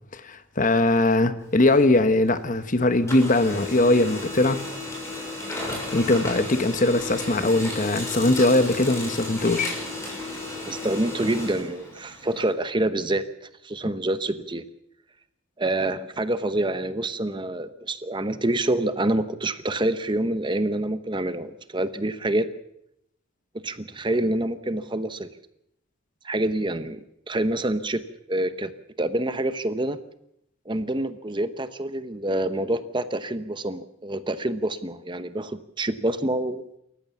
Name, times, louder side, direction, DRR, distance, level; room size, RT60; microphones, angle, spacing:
voice 1, 0.1-4.6 5.7-9.7, left 2 dB, 40° left, 11 dB, 1.1 m, -21 dB
Printer, 1.4-2.7 2.9-12.5, left 2 dB, 15° left, 6.6 m, -34 dB
voice 2, 10.7-13.3 13.6-14.6 15.6-22.5 23.6-25.3 26.2-27.0 27.3-28.7 29.0-30.0 30.7-36.6, right 1 dB, 20° right, 12 dB, 0.9 m, -27 dB
28.0 x 14.5 x 7.2 m, 0.78 s
head